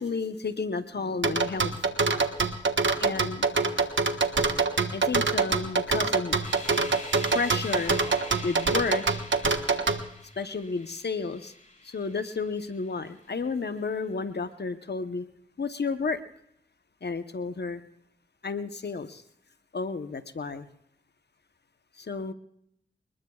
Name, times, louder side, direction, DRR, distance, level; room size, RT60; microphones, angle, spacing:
voice 1, 0.0-1.8 3.0-3.5 4.9-6.4 7.3-8.0 8.4-9.1 10.4-11.5 11.8-15.2 15.6-16.2 17.0-17.8 18.4-19.2 19.7-20.7 22.0-22.3, left 4 dB, 60° left, 9 dB, 0.9 m, -31 dB
sound 1, 1.2-10.0, right 4 dB, 75° right, 1.3 m, -24 dB
sound 2, 6.4-13.2, left 2 dB, 40° left, 3.3 m, -44 dB
28.0 x 20.5 x 2.4 m, 0.75 s
cardioid pair, 50°, 20 cm